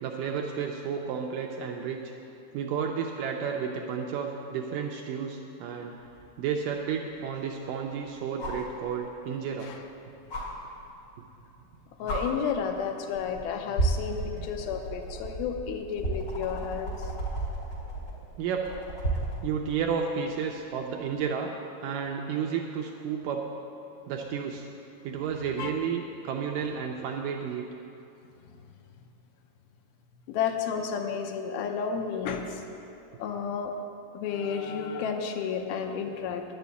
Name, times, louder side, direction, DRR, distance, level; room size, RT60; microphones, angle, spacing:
voice 1, 0.0-2.1 2.5-5.9 6.4-9.7 14.3-14.5 18.4-18.6 19.4-21.5 21.8-23.5 24.1-24.7 25.0-27.7, right 7 dB, 80° right, 1 dB, 2.0 m, -32 dB
sound 1, 6.2-6.3 8.4-8.7 10.3-10.4 11.6-11.7 12.1-12.2 13.1-13.4 13.7-19.4 21.1-21.2, right 2 dB, 40° left, 2.5 m, -32 dB
voice 2, 12.0-17.1 25.6-25.7 30.3-32.6 33.2-33.7 34.1-36.4, left 6 dB, 80° left, 4 dB, 2.6 m, -32 dB
10.0 x 7.0 x 8.2 m, 2.8 s
omnidirectional pair, 4.4 m